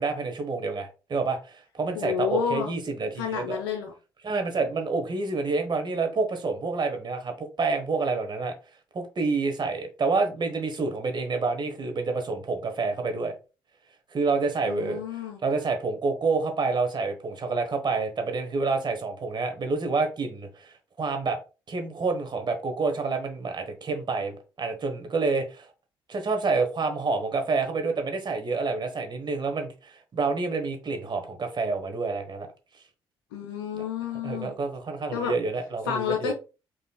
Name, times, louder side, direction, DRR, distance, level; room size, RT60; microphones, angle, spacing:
voice 1, 0.0-3.6 4.2-8.5 8.9-13.3 14.1-15.0 15.4-21.4 21.7-25.7 26.1-32.5 33.7-33.8 34.2-36.3, right 4 dB, 35° right, 1.2 m, -28 dB
voice 2, 1.9-2.7 3.2-3.9 14.6-15.4 33.3-34.6 35.1-35.3 35.9-36.3, left 8 dB, 75° left, 0.6 m, -30 dB
5.2 x 3.1 x 2.3 m
figure-of-eight pair, 40°, 12 cm